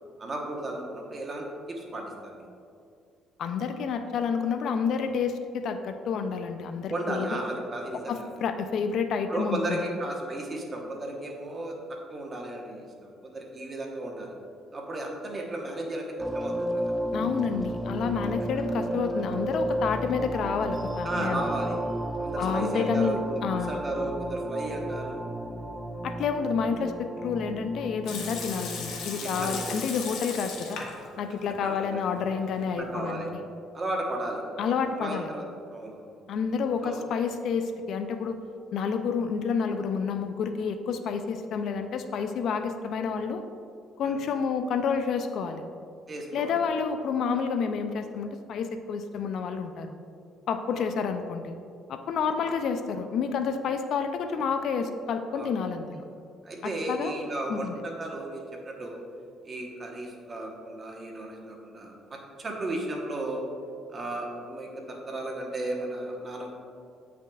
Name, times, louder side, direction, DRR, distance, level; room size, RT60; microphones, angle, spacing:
voice 1, 0.2-2.5 6.9-8.3 9.3-11.8 12.1-14.3 14.7-16.9 21.0-21.8 22.2-25.2 29.2-29.8 31.6-32.0 32.8-33.3 33.7-34.7 35.0-36.0 36.8-37.0 44.0-44.2 46.1-46.6 50.7-50.9 55.3-55.5 56.4-59.0 59.4-63.4 63.9-66.5, right 1 dB, 30° right, 0 dB, 1.0 m, -34 dB
voice 2, 3.4-7.3 7.9-9.8 17.1-21.5 22.4-23.8 26.0-30.8 31.2-33.4 34.6-35.3 36.3-38.4 38.7-43.4 44.0-45.6 46.3-50.0 50.5-51.5 51.9-56.0 56.6-57.2 57.5-57.8, left 6 dB, 60° left, 8 dB, 0.4 m, -29 dB
sound 1, 16.2-29.8, right 1 dB, 10° right, 0.4 m, -33 dB
Water tap faucet / Sink (filling or washing) / Liquid, 28.1-31.1 31.4-31.5 32.1-32.7, left 5 dB, 80° left, 1.1 m, -37 dB
8.4 x 5.9 x 2.3 m, 2.4 s
cardioid pair, 120°, 0 cm